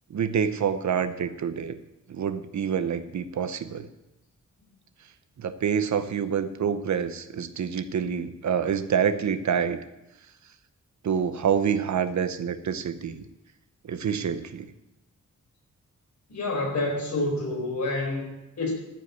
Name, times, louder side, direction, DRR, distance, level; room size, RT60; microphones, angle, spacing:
voice 1, 0.1-1.8 2.1-3.9 5.4-9.8 11.0-13.2 13.8-14.7, right 7 dB, 65° right, 11 dB, 0.9 m, -27 dB
voice 2, 16.3-18.7, left 2 dB, 65° left, -1 dB, 4.3 m, -28 dB
14.5 x 5.4 x 8.0 m, 0.94 s
wide cardioid pair, 180°, 31 cm